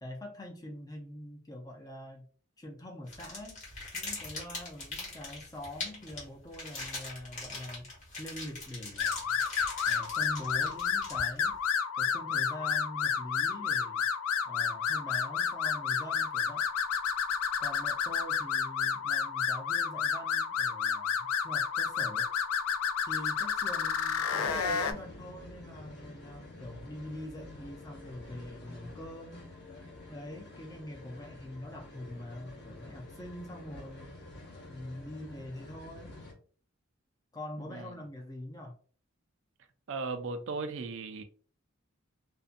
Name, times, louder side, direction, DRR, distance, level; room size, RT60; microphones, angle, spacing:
voice 1, 0.0-2.3 2.6-3.6 3.9-7.9 8.2-9.4 9.9-14.1 14.5-16.7 17.6-22.3 23.1-29.5 30.1-34.2 34.7-36.2 37.3-38.8, left 1 dB, 15° left, 0.4 m, -44 dB
sound 1, 3.1-11.5, left 3 dB, 35° left, 1.0 m, -42 dB
sound 2, 9.0-24.9, left 6 dB, 80° left, 0.4 m, -31 dB
sound 3, 24.4-36.3, left 2 dB, 50° left, 0.8 m, -49 dB
voice 2, 39.9-41.2, right 4 dB, 65° right, 0.4 m, -36 dB
2.5 x 2.2 x 2.5 m
head